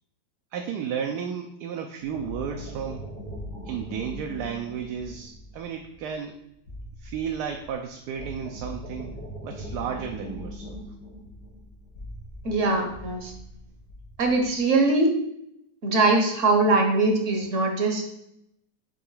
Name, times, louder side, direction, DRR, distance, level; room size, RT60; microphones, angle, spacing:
voice 1, 0.5-3.0 3.6-6.4 7.0-9.2 9.4-10.8, right 7 dB, 75° right, 4 dB, 1.1 m, -33 dB
sound 1, 2.0-14.6, equal, 85° left, 3.4 m, -41 dB
voice 2, 12.4-13.3 14.2-15.1 15.8-18.0, right 2 dB, 55° right, 3 dB, 1.1 m, -22 dB
7.9 x 2.9 x 4.9 m, 0.79 s
omnidirectional pair, 1.8 m